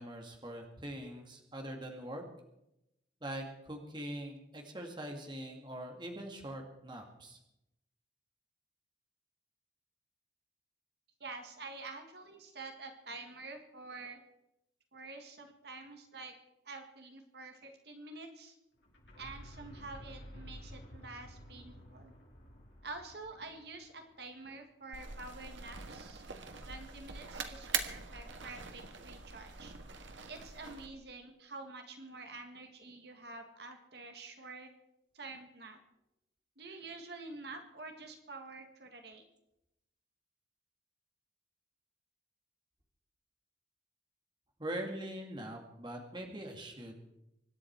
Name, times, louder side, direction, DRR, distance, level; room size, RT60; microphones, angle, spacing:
voice 1, 0.0-2.2 3.2-7.4 44.6-47.0, right 1 dB, 25° right, 2 dB, 2.3 m, -43 dB
voice 2, 11.2-14.2 14.9-16.3 16.7-18.6 19.2-22.1 22.8-26.3 26.7-29.7 30.3-34.7 35.1-35.8 36.6-39.2, right 3 dB, 60° right, 5 dB, 1.9 m, -48 dB
sound 1, 18.8-24.6, equal, 70° left, 5.7 m, -52 dB
sound 2, 24.9-30.9, right 6 dB, 80° right, 1.5 m, -42 dB
25.0 x 10.5 x 4.7 m, 0.87 s
head